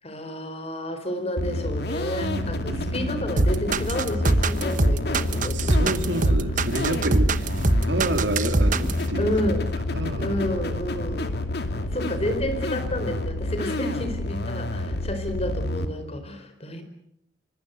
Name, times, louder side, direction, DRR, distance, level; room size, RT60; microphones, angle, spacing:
voice 1, 0.0-6.3 7.3-7.4 7.7-7.9 9.2-9.6 10.2-11.4 11.9-16.8, left 1 dB, 35° left, 8 dB, 4.3 m, -30 dB
sound 1, 1.4-15.9, left 1 dB, 60° left, 2.6 m, -28 dB
voice 2, 2.2-3.2 5.5-7.5 7.8-9.5 9.9-10.4, right 1 dB, 70° right, 6 dB, 3.4 m, -29 dB
sound 2, 3.4-9.0, right 2 dB, 45° right, 1.1 m, -22 dB
26.0 x 25.0 x 8.0 m, 0.74 s
head